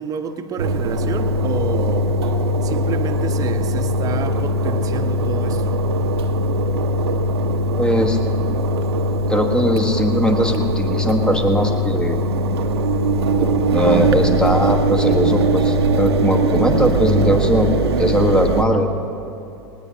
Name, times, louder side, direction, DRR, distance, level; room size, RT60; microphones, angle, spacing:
voice 1, 0.0-2.1 2.6-5.8, right 5 dB, 25° right, 5 dB, 1.1 m, -29 dB
Engine, 0.6-18.6, right 1 dB, 75° right, 0.9 m, -20 dB
voice 2, 7.8-8.2 9.3-12.2 13.4-18.9, equal, 5° left, 4 dB, 1.4 m, -20 dB
19.5 x 19.0 x 2.8 m, 2.7 s
hypercardioid pair, 90°, 14 cm